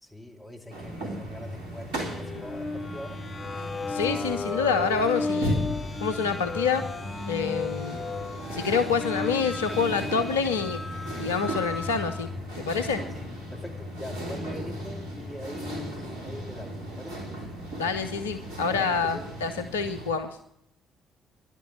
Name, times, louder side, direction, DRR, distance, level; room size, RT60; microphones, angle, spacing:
voice 1, 0.0-3.2 13.1-13.2 13.5-17.3 18.7-19.3, left 1 dB, 15° left, 3 dB, 2.7 m, -42 dB
sound 1, 0.7-20.1, equal, 70° right, 2.7 m, -36 dB
sound 2, 2.0-12.3, left 3 dB, 30° left, 0.5 m, -35 dB
voice 2, 3.9-5.6 6.0-6.8 7.3-8.0 8.5-10.8 11.2-12.3 12.5-13.0 17.8-20.3, left 5 dB, 80° left, 8 dB, 0.6 m, -27 dB
11.5 x 8.3 x 9.5 m, 0.75 s
figure-of-eight pair, 45°, 0 cm